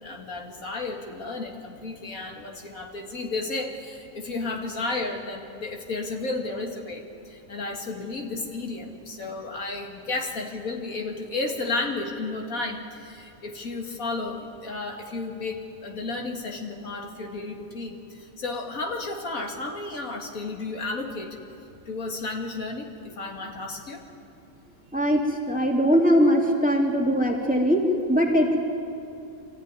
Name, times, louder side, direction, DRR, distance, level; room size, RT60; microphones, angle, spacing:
voice 1, 0.0-21.4 21.9-24.0, left 3 dB, 70° left, 2 dB, 2.3 m, -33 dB
voice 2, 24.9-28.6, equal, 5° right, 0 dB, 2.4 m, -21 dB
24.5 x 14.5 x 9.7 m, 2.7 s
omnidirectional pair, 1.5 m